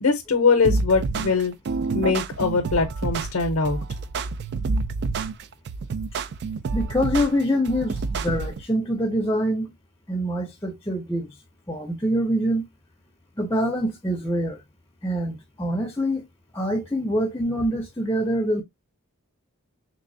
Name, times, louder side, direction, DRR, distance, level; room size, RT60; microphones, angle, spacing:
voice 1, 0.0-1.5 1.9-3.8, left 4 dB, 70° left, 0.6 m, -22 dB
sound 1, 0.6-8.6, right 4 dB, 50° right, 0.3 m, -28 dB
voice 2, 6.7-9.7 10.1-11.3 11.7-12.6 13.4-14.6 15.0-16.2 16.5-18.6, equal, 15° left, 0.6 m, -25 dB
3.4 x 3.2 x 2.5 m
head